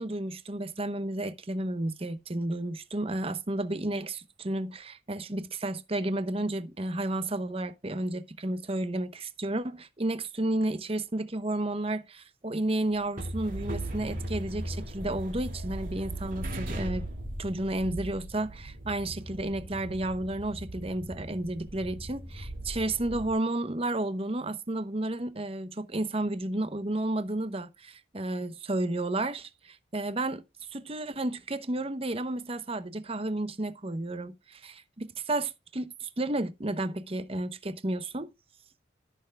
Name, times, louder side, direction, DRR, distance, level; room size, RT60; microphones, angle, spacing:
voice 1, 0.0-17.1 17.4-30.4 30.7-38.3, right 1 dB, 30° right, 0.9 m, -32 dB
sound 1, 12.9-23.3, right 1 dB, 45° right, 2.7 m, -38 dB
14.0 x 6.7 x 2.4 m
head